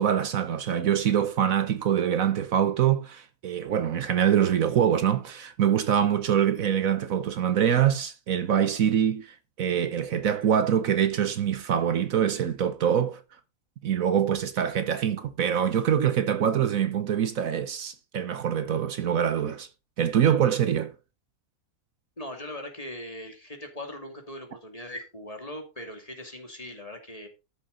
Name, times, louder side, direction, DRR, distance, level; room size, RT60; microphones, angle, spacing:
voice 1, 0.0-13.2 13.8-19.7 20.0-20.9, right 9 dB, 70° right, 1.3 m, -24 dB
voice 2, 22.2-27.3, left 1 dB, 25° left, 2.6 m, -40 dB
13.0 x 7.0 x 4.0 m
omnidirectional pair, 1.6 m